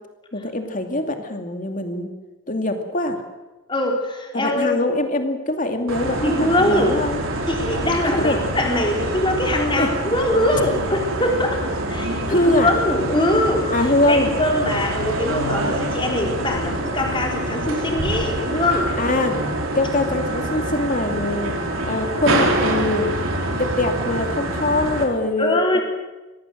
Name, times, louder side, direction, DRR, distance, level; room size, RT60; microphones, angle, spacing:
voice 1, 0.3-2.1 2.5-3.2 4.3-7.2 8.1-8.5 9.8-9.9 12.3-12.8 13.7-14.3 19.0-19.5 19.7-21.5 21.8-25.8, left 2 dB, 40° left, 5 dB, 2.6 m, -23 dB
voice 2, 3.7-4.8 6.2-6.9 7.5-13.7 14.1-18.9 25.4-25.8, left 1 dB, 25° left, 1 dB, 4.1 m, -22 dB
sound 1, 5.9-25.0, right 1 dB, 80° right, 4.4 m, -25 dB
25.0 x 18.5 x 7.9 m, 1.1 s
head